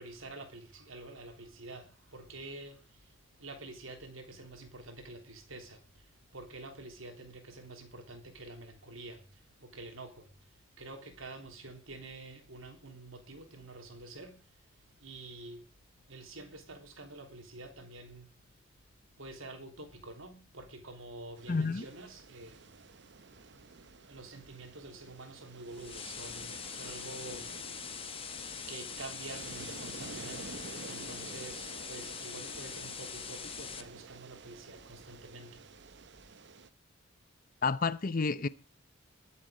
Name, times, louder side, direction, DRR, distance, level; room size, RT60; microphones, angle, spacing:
voice 1, 0.0-10.3 10.8-14.4 15.0-15.7 16.1-18.4 19.2-22.7 24.1-27.6 28.7-35.6, right 2 dB, 80° right, 3.4 m, -48 dB
sound 1, 21.4-36.7, right 4 dB, 60° right, 0.8 m, -50 dB
voice 2, 21.5-21.8 37.6-38.5, left 4 dB, 45° left, 0.7 m, -30 dB
sound 2, 25.7-33.8, left 7 dB, 25° left, 1.2 m, -43 dB
21.5 x 7.7 x 5.1 m
head